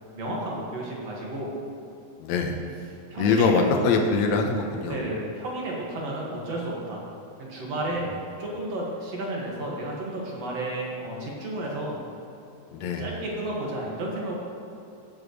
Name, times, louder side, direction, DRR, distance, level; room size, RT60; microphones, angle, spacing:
voice 1, 0.1-1.5 3.1-3.6 4.9-7.0 7.5-8.1 8.4-11.9 13.0-14.3, right 1 dB, 55° right, -3 dB, 3.0 m, -32 dB
voice 2, 2.2-2.6 3.2-5.0 12.7-13.0, left 4 dB, 70° left, 3 dB, 2.1 m, -23 dB
17.0 x 7.7 x 3.2 m, 2.8 s
omnidirectional pair, 3.5 m